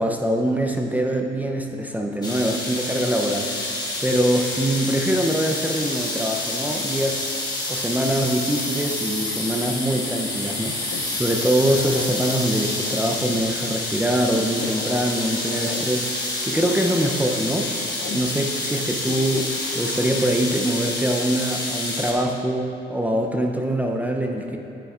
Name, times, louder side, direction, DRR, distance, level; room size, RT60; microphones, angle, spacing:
voice 1, 0.0-7.3 7.7-17.8 18.1-24.6, right 1 dB, 10° right, 2 dB, 0.6 m, -24 dB
sound 1, 2.2-22.1, left 2 dB, 20° left, 1.5 m, -28 dB
sound 2, 10.9-11.1 11.9-13.5 14.3-15.8 16.7-18.2 19.1-20.4, left 7 dB, 70° left, 0.6 m, -37 dB
9.6 x 8.8 x 2.5 m, 3.0 s
cardioid pair, 90°, 20 cm